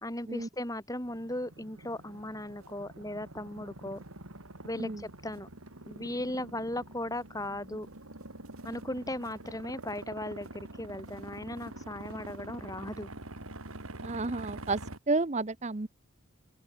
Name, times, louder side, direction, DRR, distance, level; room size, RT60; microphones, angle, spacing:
voice 1, 0.0-4.0 4.6-5.5 5.8-7.9 8.6-13.1, left 1 dB, 15° left, 4.5 m, -37 dB
sound 1, 1.0-15.0, right 2 dB, 85° right, 3.7 m, -46 dB
voice 2, 14.0-14.8 15.1-15.9, right 3 dB, 30° right, 0.8 m, -31 dB
open air
head